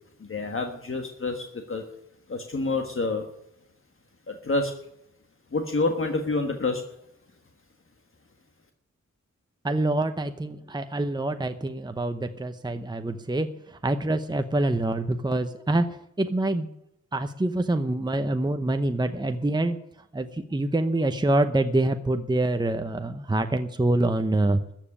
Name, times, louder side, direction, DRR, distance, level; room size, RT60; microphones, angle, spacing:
voice 1, 0.2-1.9 2.3-3.3 4.3-4.8 5.5-6.9, left 3 dB, 45° left, 5 dB, 1.5 m, -28 dB
voice 2, 9.6-16.7 17.1-19.8 20.1-24.6, right 2 dB, 15° right, 8 dB, 0.8 m, -26 dB
14.0 x 7.5 x 10.0 m, 0.79 s
wide cardioid pair, 120°, 29 cm